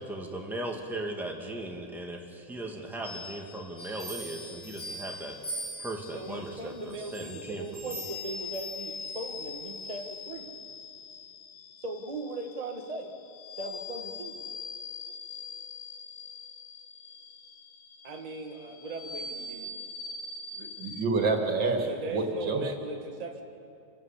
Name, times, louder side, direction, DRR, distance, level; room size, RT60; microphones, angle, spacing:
voice 1, 0.0-5.4 5.8-7.9, right 1 dB, ahead, 0 dB, 1.8 m, -38 dB
sound 1, 3.0-21.1, left 4 dB, 65° left, 1.7 m, -43 dB
sound 2, 3.8-6.3 6.9-9.3 9.8-9.9, right 1 dB, 90° left, 8.3 m, -42 dB
voice 2, 6.1-10.5 11.8-13.2 13.6-14.4 18.0-19.7 21.9-23.4, right 2 dB, 25° right, 3 dB, 1.2 m, -39 dB
voice 3, 20.6-22.7, right 3 dB, 80° right, 3 dB, 2.6 m, -28 dB
26.0 x 12.5 x 8.3 m, 2.5 s
omnidirectional pair, 2.0 m